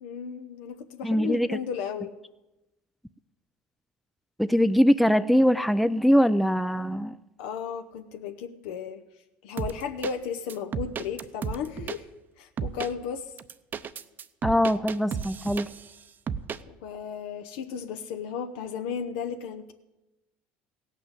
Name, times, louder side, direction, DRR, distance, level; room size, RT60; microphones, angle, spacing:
voice 1, 0.0-2.1 7.4-9.0 9.4-12.1 12.4-13.3 16.7-19.7, left 7 dB, 80° left, 7 dB, 0.8 m, -34 dB
voice 2, 1.0-1.6 4.4-7.2 14.4-15.7, equal, ahead, 12 dB, 0.4 m, -22 dB
sound 1, 9.6-10.1 10.5-12.0 12.6-12.9 13.4-15.9 16.3-16.6, right 6 dB, 40° right, 0.6 m, -33 dB
16.5 x 6.0 x 8.0 m, 0.99 s
supercardioid pair, 90°, 5 cm